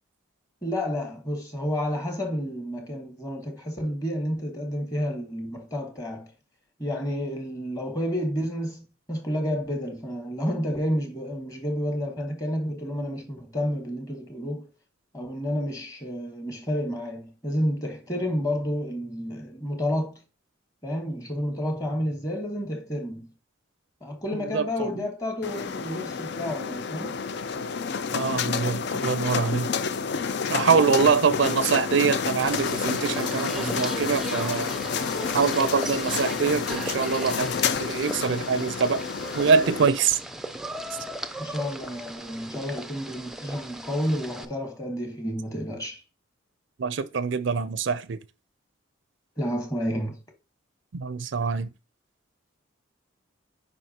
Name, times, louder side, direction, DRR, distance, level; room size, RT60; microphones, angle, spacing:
voice 1, 0.6-6.3 6.8-14.7 15.1-20.2 20.8-23.3 24.0-27.2 41.4-46.0 49.4-50.2, equal, 15° left, 1.4 m, -30 dB
sound 1, 25.4-39.9, left 5 dB, 55° left, 0.4 m, -29 dB
voice 2, 28.1-29.7 30.5-34.7 35.3-37.5 37.8-39.0 39.4-40.2 46.8-48.2 50.9-51.7, right 5 dB, 65° right, 0.4 m, -24 dB
sound 2, 32.4-44.5, right 1 dB, ahead, 0.4 m, -37 dB
7.7 x 5.2 x 2.8 m
head